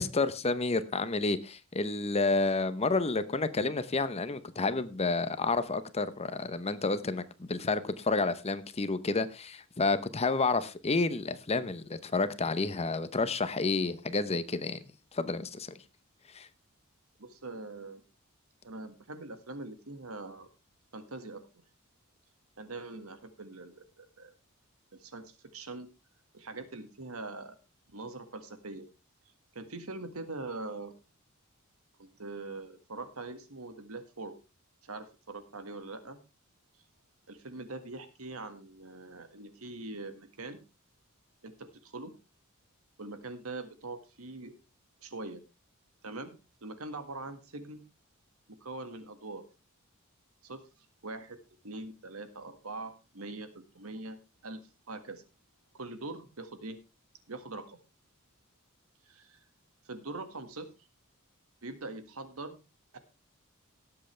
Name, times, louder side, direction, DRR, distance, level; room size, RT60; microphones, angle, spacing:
voice 1, 0.0-14.8 15.1-15.7 16.3-16.5, left 3 dB, 30° left, 0.8 m, -30 dB
voice 2, 17.2-18.0 18.6-20.5 20.9-21.4 22.6-24.3 24.9-25.9 26.3-27.6 27.9-28.9 29.5-30.9 32.0-34.4 34.8-36.2 37.3-40.6 41.4-42.1 43.0-44.5 45.0-45.4 46.0-46.4 46.6-47.8 48.6-49.4 50.4-51.4 51.6-54.2 54.4-54.6 54.9-55.2 55.7-56.8 57.3-57.8 59.1-59.4 59.9-60.7 61.6-62.6 62.9-63.0, right 2 dB, 80° right, 1.8 m, -42 dB
18.5 x 7.9 x 3.3 m
head